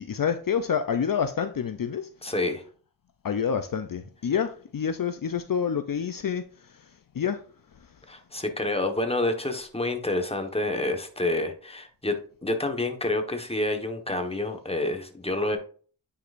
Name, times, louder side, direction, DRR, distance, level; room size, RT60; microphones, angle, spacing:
voice 1, 0.0-2.1 3.2-6.4 7.2-7.4, left 7 dB, 60° left, 0.6 m, -27 dB
voice 2, 2.2-2.6 8.1-12.2 12.4-15.6, left 2 dB, 15° left, 1.3 m, -28 dB
9.7 x 4.9 x 2.6 m
wide cardioid pair, 60°, 39 cm